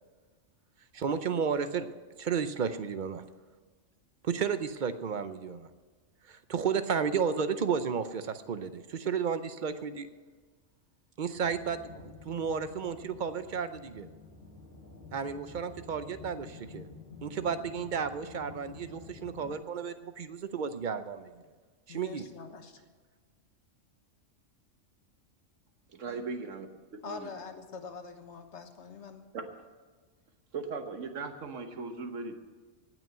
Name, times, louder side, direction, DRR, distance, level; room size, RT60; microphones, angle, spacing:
voice 1, 0.9-1.9 2.2-3.2 4.2-5.7 6.3-10.1 11.2-14.1 15.1-16.9 17.2-21.3 21.9-22.3, right 6 dB, 50° right, 11 dB, 0.7 m, -32 dB
sound 1, 11.3-19.5, left 4 dB, 15° right, 2.8 m, -50 dB
voice 2, 21.9-22.8 26.1-26.3 27.0-29.3, left 5 dB, 65° left, 7 dB, 1.4 m, -44 dB
voice 3, 25.9-26.7 26.9-27.3 29.3-29.5 30.5-32.4, right 4 dB, 85° right, 6 dB, 1.5 m, -38 dB
18.0 x 6.1 x 7.6 m, 1.4 s
omnidirectional pair, 1.3 m